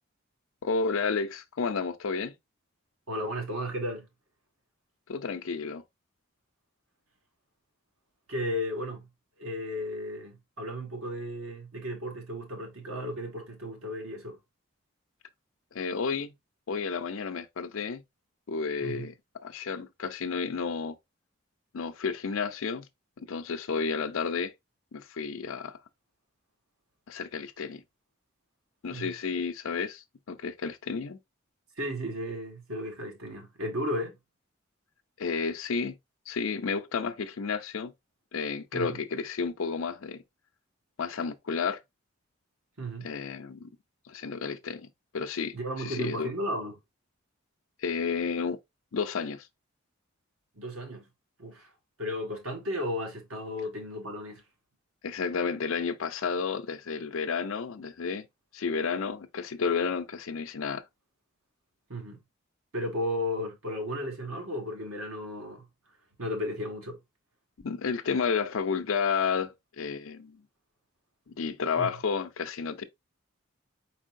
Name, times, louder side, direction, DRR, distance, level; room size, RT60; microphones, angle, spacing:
voice 1, 0.6-2.3 5.1-5.8 15.7-16.3 16.7-18.0 18.5-19.1 19.4-21.0 21.7-22.9 23.2-24.5 24.9-25.8 27.1-27.8 28.8-31.2 35.2-36.0 36.3-37.9 38.3-40.2 41.0-41.8 43.0-43.7 44.1-44.9 45.1-46.3 47.8-48.6 48.9-49.5 55.0-58.3 58.5-60.8 67.6-70.4 71.3-72.8, left 5 dB, 80° left, 0.5 m, -31 dB
voice 2, 3.1-4.1 8.3-9.1 9.4-14.4 18.8-19.1 28.9-29.1 31.8-34.1 38.7-39.0 42.8-43.1 45.5-46.8 50.6-51.1 51.4-51.7 52.0-54.4 61.9-62.2 62.7-65.6 66.2-67.0 71.8-71.9, equal, 90° right, 1.8 m, -34 dB
4.5 x 4.1 x 2.6 m
head